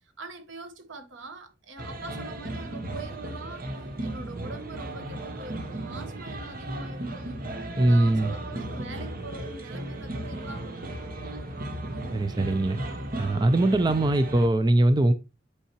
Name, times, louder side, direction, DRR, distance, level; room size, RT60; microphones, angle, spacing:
voice 1, 0.2-3.7 4.0-7.4 7.8-11.0, right 2 dB, 80° right, 1.1 m, -43 dB
sound 1, 1.8-14.5, right 1 dB, 50° right, 1.1 m, -35 dB
voice 2, 7.8-8.3 12.1-12.8 13.2-15.1, right 1 dB, 25° right, 0.4 m, -21 dB
8.3 x 4.7 x 2.9 m
head